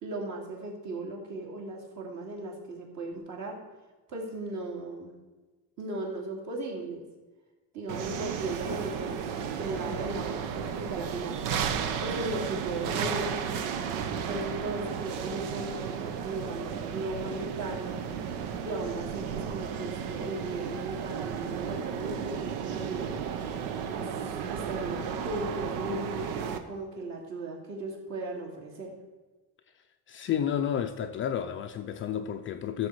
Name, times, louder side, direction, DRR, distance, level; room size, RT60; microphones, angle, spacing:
voice 1, 0.0-3.6 4.1-5.2 5.8-7.0 7.7-11.4 12.0-18.0 18.6-23.2 23.9-29.0, right 2 dB, 45° right, 2.6 m, -37 dB
sound 1, 7.9-26.6, right 7 dB, 85° right, 1.1 m, -34 dB
voice 2, 30.1-32.9, left 9 dB, 35° left, 0.4 m, -31 dB
14.0 x 6.8 x 4.7 m
cardioid pair, 155°, 39 cm